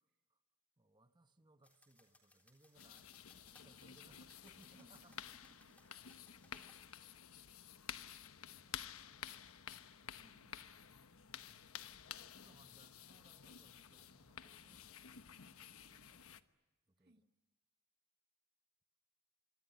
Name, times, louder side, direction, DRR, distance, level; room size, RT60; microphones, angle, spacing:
voice 1, 0.8-5.2 7.2-7.3 7.9-10.0 12.0-14.9 15.6-16.3 16.9-17.2, right 2 dB, 20° right, 1.0 m, -69 dB
sound 1, 1.6-6.8, left 1 dB, 5° left, 3.7 m, -70 dB
sound 2, 2.7-16.4, left 9 dB, 75° left, 1.1 m, -52 dB
voice 2, 4.7-5.8 10.2-10.6 17.0-17.3, right 1 dB, 45° right, 2.1 m, -68 dB
24.5 x 24.5 x 9.1 m
head